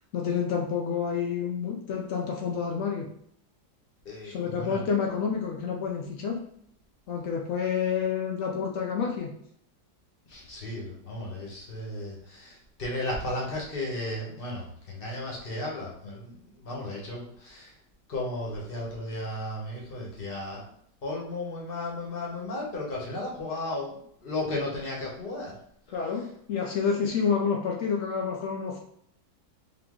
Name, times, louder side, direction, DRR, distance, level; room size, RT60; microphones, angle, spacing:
voice 1, 0.1-3.1 4.2-6.4 7.1-9.3 25.9-28.8, left 6 dB, 80° left, 0 dB, 0.7 m, -29 dB
voice 2, 4.0-4.8 10.3-17.7 18.1-20.7 21.0-25.6, left 1 dB, 35° left, -3 dB, 1.0 m, -34 dB
3.8 x 2.8 x 3.7 m, 0.68 s
omnidirectional pair, 2.0 m